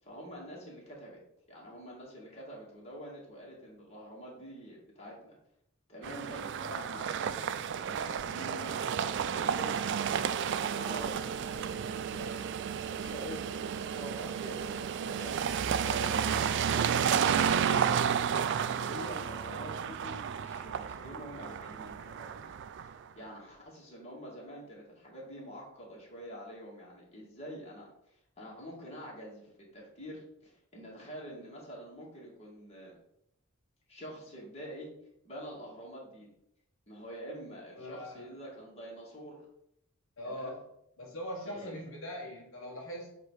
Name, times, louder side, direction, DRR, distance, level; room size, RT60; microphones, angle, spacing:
voice 1, 0.0-1.2 1.5-5.4 5.9-9.8 10.5-12.5 12.9-15.4 15.8-18.1 18.6-22.5 22.8-32.9 33.9-34.9 35.2-36.3 36.9-39.4 40.2-40.5 41.4-41.9, equal, 30° left, -4 dB, 2.1 m, -46 dB
sound 1, 6.0-23.0, right 7 dB, 55° right, 0.3 m, -32 dB
voice 2, 15.8-16.4 37.7-38.2 40.2-40.7 41.0-43.1, left 1 dB, 60° left, -3 dB, 1.3 m, -41 dB
7.8 x 3.0 x 4.8 m, 0.77 s
head